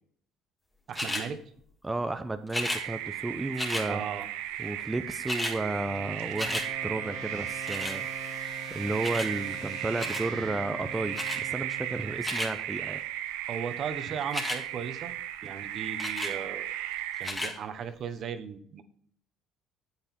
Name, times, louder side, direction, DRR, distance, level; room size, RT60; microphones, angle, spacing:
sound 1, 0.9-1.3 2.5-2.8 3.6-3.9 4.8-4.9 5.1-5.6 6.0-6.7 7.7-8.0 9.0-9.3 10.0-10.3 11.1-11.4 12.0-12.5 14.2-14.6 16.0-16.4 17.2-17.5 18.2-18.3, left 1 dB, 15° left, 2.7 m, -33 dB
voice 1, 0.9-1.4 3.9-4.3 13.5-15.1 15.4-16.7 17.2-18.8, right 7 dB, 55° right, 10 dB, 1.1 m, -36 dB
voice 2, 1.8-4.0 4.6-8.1 8.7-13.0, right 2 dB, 15° right, 8 dB, 0.7 m, -33 dB
sound 2, 2.6-17.3, right 12 dB, 85° right, 0.7 m, -36 dB
sound 3, 5.2-12.3, equal, 85° left, 3.5 m, -44 dB
8.8 x 8.1 x 4.4 m, 0.62 s
supercardioid pair, 80°, 0 cm